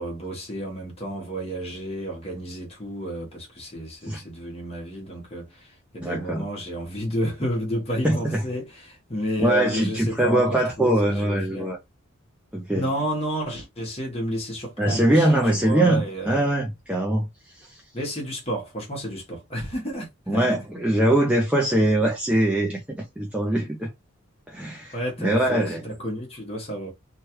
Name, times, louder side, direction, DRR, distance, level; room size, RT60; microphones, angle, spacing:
voice 1, 0.0-11.7 12.7-16.5 17.9-20.6 24.9-26.9, right 1 dB, 25° left, 1.0 m, -31 dB
voice 2, 6.0-6.5 8.0-8.4 9.4-11.8 12.5-12.9 14.8-17.8 20.3-23.9 24.5-25.8, right 1 dB, 5° right, 0.4 m, -22 dB
3.0 x 2.3 x 2.9 m
head